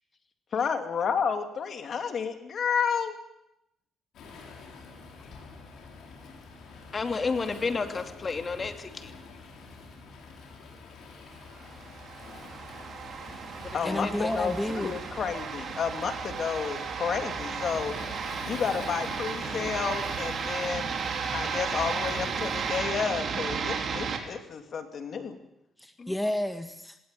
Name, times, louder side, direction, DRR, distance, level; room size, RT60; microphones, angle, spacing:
voice 1, 0.5-3.1 13.7-14.1 14.3-17.9 18.5-21.0 21.3-25.4, left 6 dB, 55° left, 6 dB, 2.8 m, -31 dB
Waves surf, 4.1-22.8, left 4 dB, 75° left, 6.4 m, -47 dB
voice 2, 6.9-9.1 13.6-14.3 26.0-26.1, left 4 dB, 35° left, 7 dB, 2.5 m, -32 dB
sound 1, 11.6-24.2, right 6 dB, 55° right, 3.6 m, -34 dB
voice 3, 13.1-14.9 25.8-27.0, left 1 dB, 5° left, 7 dB, 1.6 m, -32 dB
19.0 x 18.5 x 9.0 m, 0.84 s
cardioid pair, 90°, 0 cm